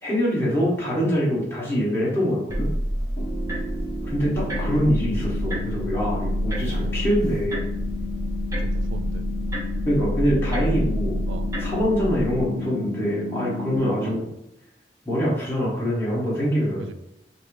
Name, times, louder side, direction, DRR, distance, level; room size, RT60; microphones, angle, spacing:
voice 1, 0.0-2.7 4.0-7.7 9.9-11.2 11.6-14.3 15.0-16.9, equal, 15° left, -6 dB, 1.3 m, -24 dB
sound 1, 2.5-12.4, equal, 15° right, 0.7 m, -28 dB
Piano, 3.2-14.2, right 3 dB, 30° left, 1.2 m, -37 dB
sound 2, 4.3-13.8, left 13 dB, 80° left, 0.5 m, -35 dB
voice 2, 6.5-7.3 8.5-9.3 11.3-11.5 14.0-14.2 16.8-16.9, right 4 dB, 85° right, 10 dB, 0.3 m, -39 dB
5.7 x 2.1 x 3.2 m, 0.85 s
head